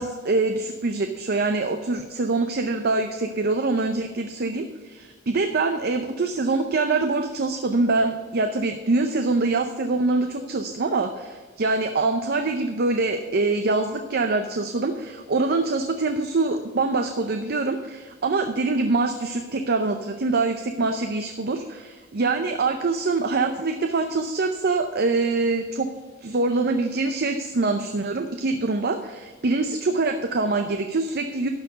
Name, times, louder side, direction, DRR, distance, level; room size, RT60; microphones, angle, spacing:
voice 1, 0.0-25.9 26.2-31.5, right 3 dB, 50° right, 6 dB, 0.6 m, -24 dB
12.0 x 4.5 x 8.1 m, 1.4 s
head